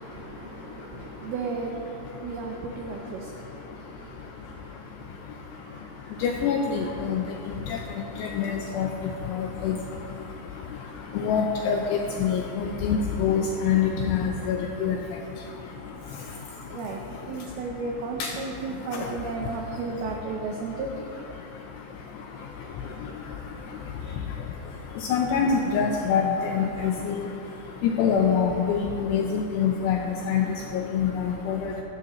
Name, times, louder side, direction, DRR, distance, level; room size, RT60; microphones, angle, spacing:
voice 1, 0.0-1.8 2.2-3.3 4.0-4.1 16.7-17.0 17.3-20.9 24.0-24.2, right 4 dB, 90° right, 1 dB, 2.2 m, -34 dB
voice 2, 6.2-7.2 8.2-8.9 9.4-9.8 11.2-15.0 18.2-18.3 25.1-27.1 27.8-30.0 30.3-30.5 30.9-31.6, left 6 dB, 80° left, 1 dB, 2.5 m, -25 dB
16.5 x 13.0 x 3.1 m, 2.7 s
omnidirectional pair, 5.6 m